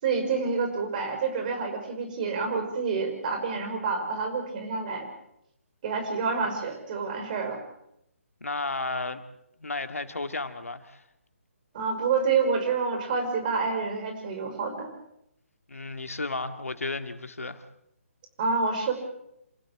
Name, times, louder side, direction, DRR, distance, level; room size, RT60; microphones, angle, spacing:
voice 1, 0.0-5.1 5.8-7.6 11.7-14.9 18.4-18.9, right 5 dB, 35° right, 5 dB, 5.6 m, -28 dB
voice 2, 8.4-9.2 9.6-11.0 15.7-17.6, left 3 dB, 80° left, 8 dB, 2.0 m, -33 dB
28.0 x 15.5 x 7.4 m, 0.80 s
figure-of-eight pair, 145°, 8 cm